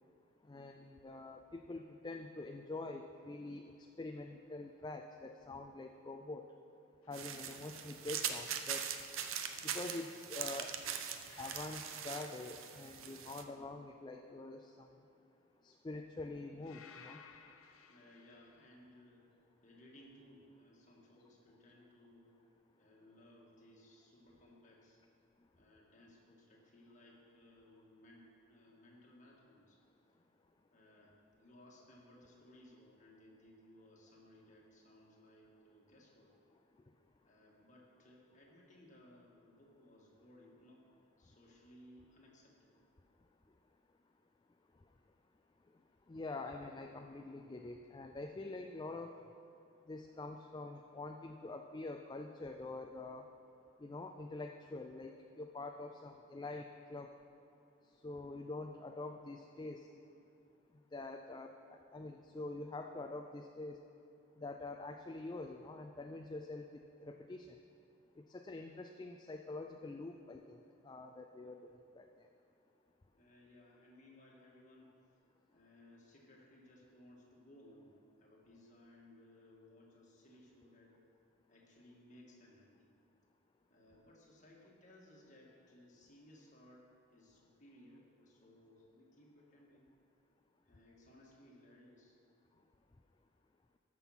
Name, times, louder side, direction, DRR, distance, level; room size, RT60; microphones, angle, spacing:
voice 1, 0.5-6.5 7.1-8.9 9.6-10.7 11.4-14.9 15.6-17.2 46.1-49.1 49.9-53.3 53.8-57.1 58.0-59.9 60.9-63.8 64.4-66.7 67.0-67.5 68.3-72.1, left 2 dB, 20° left, 4 dB, 0.3 m, -46 dB
sound 1, 7.0-7.4 11.2-13.4 16.6-18.7, left 6 dB, 80° left, 0.6 m, -59 dB
sound 2, 7.1-13.4, right 8 dB, 75° right, 0.7 m, -42 dB
voice 2, 17.9-19.3 19.6-22.3 22.8-25.0 25.6-29.8 30.7-31.1 31.4-36.3 37.2-40.9 41.2-42.8 73.1-74.9 75.5-80.9 81.5-82.9 83.7-86.9 87.1-89.9 90.6-92.2, left 1 dB, 35° left, -2 dB, 1.7 m, -61 dB
12.5 x 6.2 x 5.8 m, 2.6 s
head